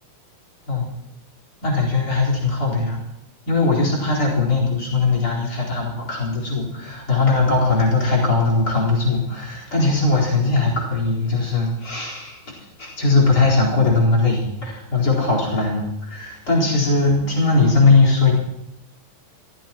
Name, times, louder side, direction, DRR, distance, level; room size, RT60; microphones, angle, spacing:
voice 1, 1.6-3.0 3.5-18.3, left 3 dB, 25° left, -2 dB, 4.4 m, -19 dB
24.5 x 15.5 x 3.0 m, 0.83 s
omnidirectional pair, 4.0 m